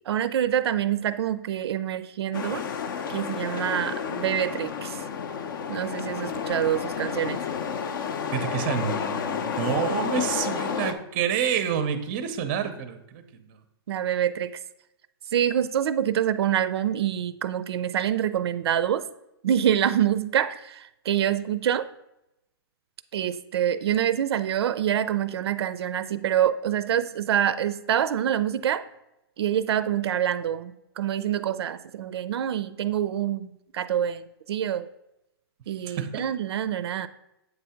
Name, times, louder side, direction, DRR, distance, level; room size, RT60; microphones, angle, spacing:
voice 1, 0.1-2.7 3.1-5.0 5.7-7.4 13.9-14.6 15.3-19.0 19.4-21.9 23.1-28.9 29.4-34.9 35.7-37.1, right 10 dB, 80° right, 14 dB, 0.4 m, -26 dB
sound 1, 2.3-10.9, left 6 dB, 55° left, 0.6 m, -31 dB
voice 2, 8.3-13.2 35.9-36.2, right 8 dB, 25° right, 9 dB, 0.5 m, -28 dB
7.9 x 2.7 x 5.6 m, 0.88 s
hypercardioid pair, 170°, 13 cm